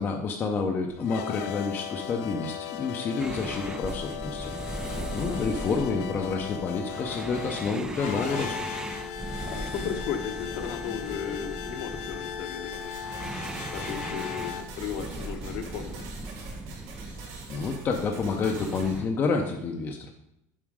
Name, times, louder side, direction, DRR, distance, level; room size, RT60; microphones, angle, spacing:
voice 1, 0.0-8.6 17.5-20.1, left 4 dB, 25° left, 2 dB, 0.6 m, -29 dB
sound 1, 0.9-14.6, left 9 dB, 70° left, 0.7 m, -37 dB
sound 2, 3.2-19.1, right 2 dB, 10° right, 0.4 m, -39 dB
voice 2, 4.8-5.4 9.4-12.9 13.7-16.1, left 8 dB, 55° left, 5 dB, 1.0 m, -36 dB
sound 3, 12.7-19.0, right 4 dB, 65° right, 2.6 m, -45 dB
7.3 x 5.0 x 4.8 m, 0.81 s
supercardioid pair, 150°, 8 cm